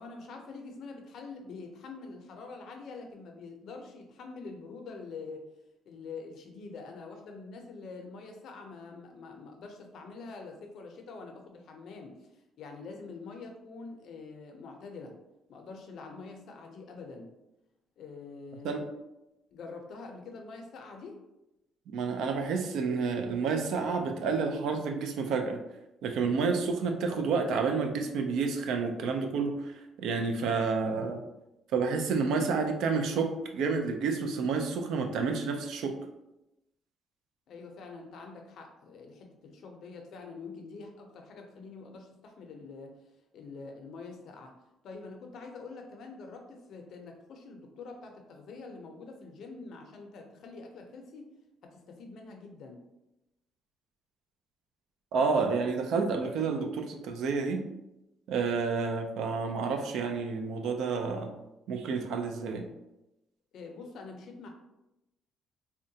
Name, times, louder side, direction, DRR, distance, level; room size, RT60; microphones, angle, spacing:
voice 1, 0.0-5.5 5.9-12.3 12.6-15.1 15.5-17.3 18.0-18.8 19.5-21.2 37.5-43.0 43.3-44.6 44.8-51.3 51.6-52.8 63.5-64.5, left 4 dB, 60° left, 3 dB, 0.5 m, -45 dB
voice 2, 21.9-25.6 26.0-29.7 30.0-31.2 31.7-35.9 55.1-57.6 58.3-61.3 61.7-62.7, right 4 dB, 70° right, 5 dB, 0.4 m, -29 dB
3.7 x 2.1 x 2.7 m, 0.92 s
cardioid pair, 155°, 0 cm